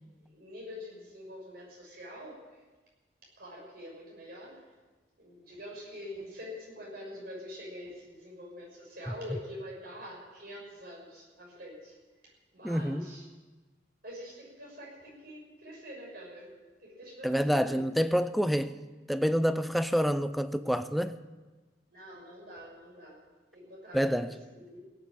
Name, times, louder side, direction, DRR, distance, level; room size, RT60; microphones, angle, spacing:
voice 1, 0.2-2.6 3.4-4.7 5.2-12.0 12.5-13.3 14.0-17.8 21.9-23.2 23.5-24.8, left 1 dB, 60° right, 6.3 m, -45 dB
voice 2, 12.6-13.1 17.2-18.8 19.1-21.1 23.9-24.3, equal, ahead, 0.5 m, -27 dB
17.5 x 8.5 x 8.7 m
head